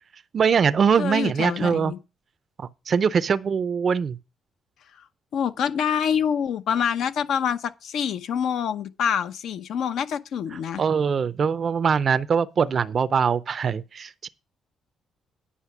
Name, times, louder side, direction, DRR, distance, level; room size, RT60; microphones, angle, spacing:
voice 1, 0.3-1.9 2.6-4.2 10.8-14.3, right 6 dB, 50° right, 0.5 m, -22 dB
voice 2, 1.0-2.0 4.9-5.0 5.3-10.8, left 8 dB, 75° left, 0.8 m, -26 dB
9.9 x 5.7 x 5.9 m
cardioid pair, 90°, 0 cm